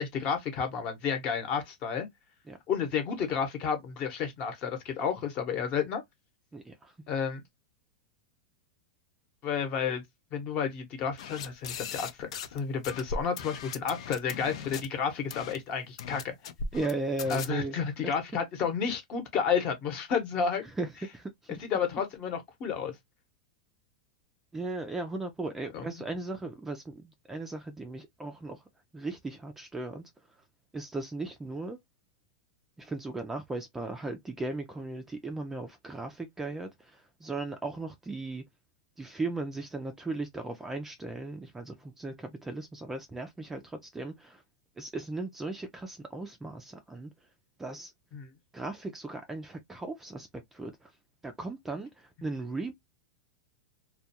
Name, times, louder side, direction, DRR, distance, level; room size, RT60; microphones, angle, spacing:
voice 1, 0.0-2.1 2.7-6.0 7.1-7.4 9.4-10.0 10.3-16.3 17.3-20.7 21.6-23.0 25.7-25.9 48.1-48.3, left 6 dB, 35° left, 0.9 m, -31 dB
voice 2, 6.5-6.9 16.7-17.8 20.8-21.6 24.5-28.6 28.9-30.1 30.7-31.8 32.8-38.4 39.0-44.4 44.8-47.1 47.6-47.9 48.5-50.9 51.2-52.7, right 2 dB, 10° right, 0.3 m, -37 dB
sound 1, 11.2-12.6 12.8-14.9 15.3-15.6 16.0-16.9 17.2-17.5, left 5 dB, 70° left, 0.5 m, -38 dB
2.3 x 2.2 x 2.7 m
supercardioid pair, 140°, 3 cm